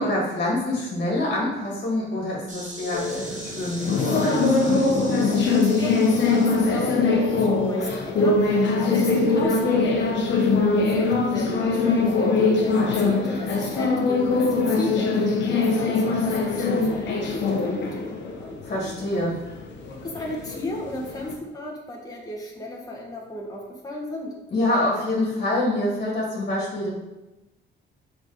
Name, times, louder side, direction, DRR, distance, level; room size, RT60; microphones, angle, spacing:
voice 1, 0.0-4.8 18.6-19.3 24.5-26.9, left 1 dB, 45° left, -3 dB, 2.2 m, -26 dB
Insect, 2.5-7.5, right 2 dB, 40° right, 1.5 m, -41 dB
sound 1, 2.9-21.3, left 3 dB, 65° left, 1.0 m, -22 dB
voice 2, 5.2-10.0 10.5-18.6 20.0-24.3, left 1 dB, 20° left, -2 dB, 1.6 m, -35 dB
6.4 x 4.1 x 5.0 m, 1.0 s
cardioid pair, 90°, 20 cm